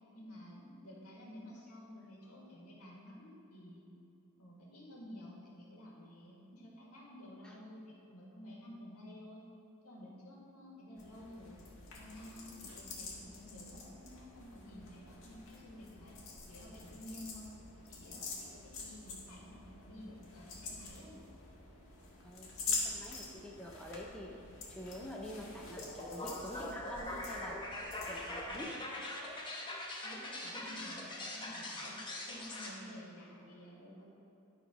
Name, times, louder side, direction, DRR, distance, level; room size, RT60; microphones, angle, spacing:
voice 1, 0.1-3.9 4.4-9.4 9.8-11.6 11.9-16.2 16.5-17.5 17.8-21.1 30.0-34.1, left 1 dB, 80° left, -4 dB, 1.9 m, -52 dB
sound 1, 11.0-28.6, left 4 dB, 65° left, 1.6 m, -46 dB
voice 2, 22.2-24.3 24.7-27.7 28.0-28.9, equal, 5° left, -1 dB, 0.6 m, -46 dB
sound 2, 25.8-32.7, left 1 dB, 20° left, 1.1 m, -42 dB
11.0 x 4.0 x 5.1 m, 2.9 s
head